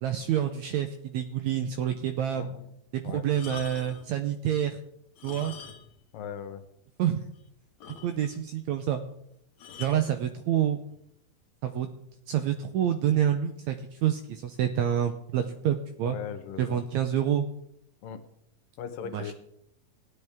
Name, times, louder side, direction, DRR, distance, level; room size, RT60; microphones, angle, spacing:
voice 1, 0.0-2.5 2.9-4.8 5.2-5.5 7.0-7.3 8.0-9.0 9.8-10.8 11.6-11.9 12.3-13.8 14.0-16.2 16.6-17.5 19.1-19.3, right 10 dB, 80° right, 8 dB, 1.7 m, -27 dB
voice 2, 2.3-2.7 3.0-3.2 6.1-6.6 16.0-16.8 18.0-18.2 18.8-19.3, left 8 dB, 85° left, 9 dB, 2.7 m, -38 dB
sound 1, 3.3-4.1 5.1-6.1 6.3-6.5 7.0-7.1 7.3-7.4 7.8-8.5 9.6-10.1 10.9-11.2, left 8 dB, 65° left, 2.1 m, -45 dB
16.0 x 9.9 x 3.5 m, 0.75 s
omnidirectional pair, 3.8 m